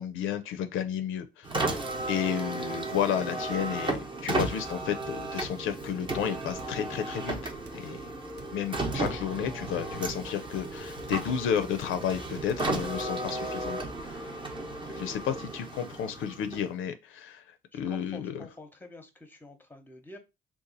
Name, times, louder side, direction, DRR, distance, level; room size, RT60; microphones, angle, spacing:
voice 1, 0.0-1.8 2.1-8.0 8.5-14.2 14.9-17.4 17.7-18.3, left 9 dB, 80° left, 0.4 m, -32 dB
Car, 1.4-16.8, right 2 dB, 25° right, 0.8 m, -34 dB
sound 1, 6.6-6.9 7.5-7.9 8.4-9.4 9.9-10.3 11.0-11.4 11.8-12.1 12.4-12.8 13.9-14.3 15.1-15.4, right 7 dB, 60° right, 0.6 m, -51 dB
voice 2, 17.7-20.2, left 2 dB, 10° left, 0.8 m, -48 dB
2.6 x 2.3 x 3.9 m
cardioid pair, 90°, 20 cm